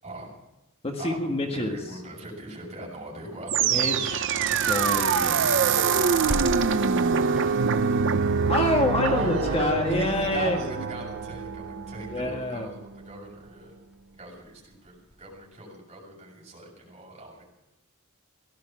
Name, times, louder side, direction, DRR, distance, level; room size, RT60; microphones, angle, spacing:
voice 1, 0.8-2.0 3.6-5.5 8.5-10.6 12.1-12.7, left 1 dB, 30° left, 3 dB, 1.6 m, -27 dB
voice 2, 1.5-4.1 9.0-12.8 13.1-13.7 14.2-17.4, right 1 dB, 30° right, -2 dB, 6.9 m, -37 dB
sound 1, 3.5-12.6, right 6 dB, 60° right, 0.8 m, -25 dB
sound 2, 6.2-15.6, equal, 5° right, 2.0 m, -42 dB
17.0 x 12.5 x 6.0 m, 0.96 s
head